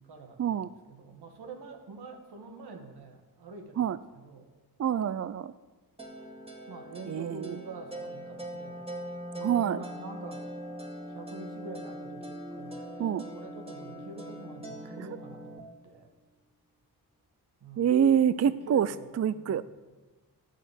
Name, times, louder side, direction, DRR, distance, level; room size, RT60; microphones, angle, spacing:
voice 1, 0.0-4.5 6.7-8.9 9.3-10.5 11.1-16.1 17.6-17.9 18.4-19.6, right 3 dB, 85° right, 3 dB, 2.1 m, -46 dB
voice 2, 4.8-5.5 7.1-7.6 9.4-9.8 13.0-13.2 17.8-18.9 19.2-19.6, right 8 dB, 45° right, 15 dB, 0.4 m, -26 dB
sound 1, 6.0-15.6, equal, 15° right, 2.2 m, -41 dB
sound 2, 11.8-16.6, left 2 dB, 15° left, 1.7 m, -53 dB
12.5 x 10.0 x 7.8 m, 1.2 s
cardioid pair, 95°, 38 cm